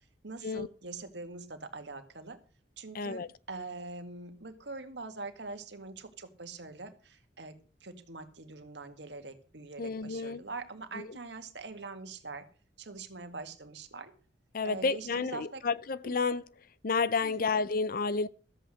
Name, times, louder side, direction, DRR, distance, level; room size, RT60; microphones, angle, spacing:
voice 1, 0.2-2.4 2.8-7.5 7.8-12.4 12.8-14.1 14.6-15.6 16.0-16.1 17.2-17.5, right 3 dB, 75° right, 1.9 m, -43 dB
voice 2, 2.9-3.3 9.8-10.4 10.9-11.1 14.5-16.4 16.8-18.3, left 4 dB, 55° left, 0.6 m, -30 dB
13.5 x 8.0 x 6.5 m
head